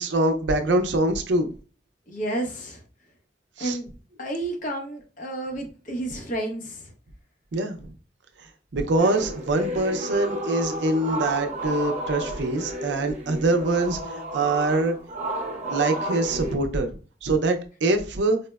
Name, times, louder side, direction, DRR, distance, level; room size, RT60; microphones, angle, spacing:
voice 1, 0.0-1.5 3.6-3.8 7.5-7.9 8.7-15.0 15.7-18.4, right 2 dB, 75° right, 6 dB, 0.5 m, -24 dB
voice 2, 2.1-2.8 3.6-3.9 4.2-6.9, right 1 dB, 50° left, 2 dB, 0.8 m, -31 dB
sound 1, 9.0-16.5, right 1 dB, 40° right, 0.7 m, -32 dB
4.2 x 2.0 x 2.2 m, 0.36 s
head